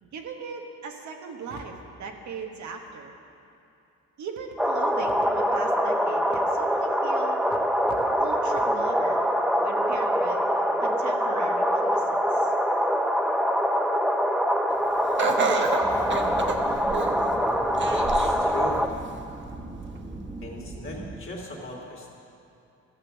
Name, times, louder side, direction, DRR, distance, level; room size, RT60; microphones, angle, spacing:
voice 1, 0.0-3.1 4.2-7.4 8.2-9.3 9.6-10.4 10.8-12.5, right 5 dB, 70° right, 3 dB, 1.3 m, -39 dB
sound 1, 4.6-18.9, equal, ahead, 0.5 m, -24 dB
Laughter, 15.2-17.3 17.8-18.4 18.9-19.0 20.0-20.1, right 4 dB, 40° right, 0.9 m, -28 dB
sound 2, 15.8-21.2, right 2 dB, 20° right, 1.5 m, -39 dB
voice 2, 17.9-18.8 20.4-22.1, left 1 dB, 45° left, -2 dB, 2.8 m, -38 dB
13.0 x 6.9 x 7.1 m, 2.6 s
cardioid pair, 90°, 30 cm